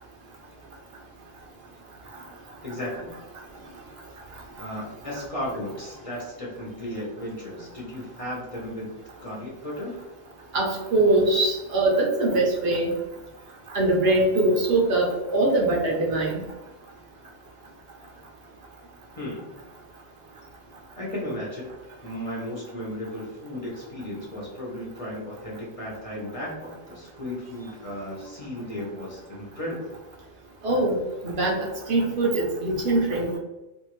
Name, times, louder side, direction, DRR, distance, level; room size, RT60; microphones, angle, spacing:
voice 1, 2.6-3.1 4.6-8.9 9.2-10.0 19.2-19.5 21.0-21.7 22.0-30.0, left 1 dB, 35° left, -5 dB, 0.8 m, -35 dB
voice 2, 10.5-12.9 13.7-16.4 30.6-31.0 31.2-33.3, right 2 dB, 65° right, -1 dB, 0.8 m, -22 dB
2.6 x 2.4 x 3.0 m, 1.0 s
omnidirectional pair, 1.2 m